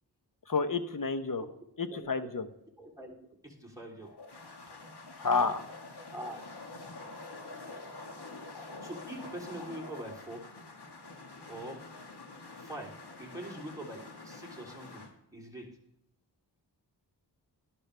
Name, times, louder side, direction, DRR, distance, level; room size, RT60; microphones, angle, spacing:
voice 1, 0.5-1.4 1.8-2.5 5.2-5.7, left 4 dB, 50° left, 10 dB, 1.0 m, -30 dB
voice 2, 1.8-2.3 2.8-3.2 3.4-4.1 6.1-6.4 8.8-10.5 11.5-11.8 12.5-15.0 15.3-15.7, right 1 dB, 10° right, -2 dB, 3.3 m, -43 dB
sound 1, 4.0-15.1, left 3 dB, 65° left, 1.7 m, -47 dB
12.0 x 11.5 x 3.4 m, 0.81 s
wide cardioid pair, 60°, 42 cm